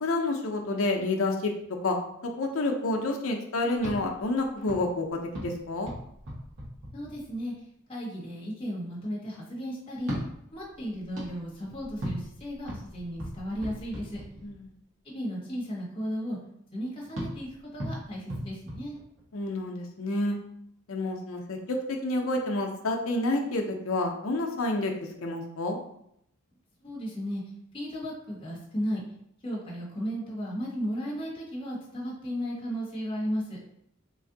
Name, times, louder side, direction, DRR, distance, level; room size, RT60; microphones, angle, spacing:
voice 1, 0.0-1.5 1.8-2.0 2.2-5.9 14.4-14.7 19.3-20.4 20.9-25.8, left 2 dB, 75° left, 2 dB, 0.6 m, -29 dB
sound 1, 3.7-7.6 9.9-14.8 17.1-19.6, equal, 60° right, 1.3 m, -39 dB
voice 2, 6.9-7.5 7.9-10.1 10.5-14.2 15.0-16.4 16.7-19.0 26.8-27.4 27.7-29.0 29.4-33.6, equal, 25° left, -5 dB, 1.2 m, -35 dB
3.1 x 2.6 x 3.8 m, 0.74 s
head